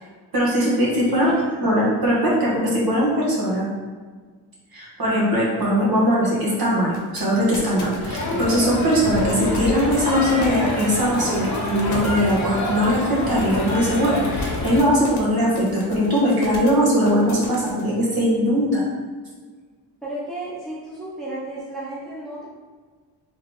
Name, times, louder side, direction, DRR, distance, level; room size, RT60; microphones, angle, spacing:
voice 1, 0.3-3.7 4.7-18.8, equal, 55° right, -5 dB, 1.4 m, -20 dB
voice 2, 1.1-1.5 20.0-22.5, right 1 dB, ahead, -7 dB, 0.9 m, -33 dB
sound 1, 6.9-17.8, left 3 dB, 65° left, 1.0 m, -39 dB
Crowd, 8.0-14.8, left 2 dB, 45° left, 0.9 m, -27 dB
3.4 x 3.4 x 3.8 m, 1.4 s
wide cardioid pair, 150°, 42 cm